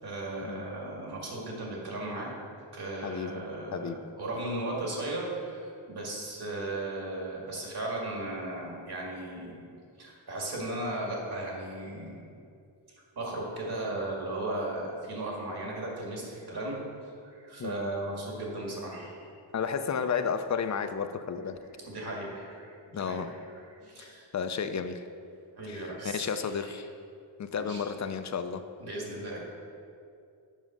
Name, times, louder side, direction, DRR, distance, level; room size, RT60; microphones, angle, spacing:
voice 1, 0.0-2.3 2.7-9.7 10.0-12.2 13.2-16.8 17.2-19.3 21.8-23.4 23.8-24.3 25.6-26.7 27.5-27.8 28.8-29.4, right 2 dB, 55° right, -3 dB, 2.2 m, -36 dB
voice 2, 3.0-3.4 3.7-4.0 17.6-17.7 19.5-21.6 22.9-23.3 24.0-24.1 24.3-25.0 25.7-26.9 27.4-28.6, left 6 dB, 40° left, 9 dB, 0.5 m, -32 dB
7.4 x 5.4 x 6.0 m, 2.4 s
wide cardioid pair, 105°, 46 cm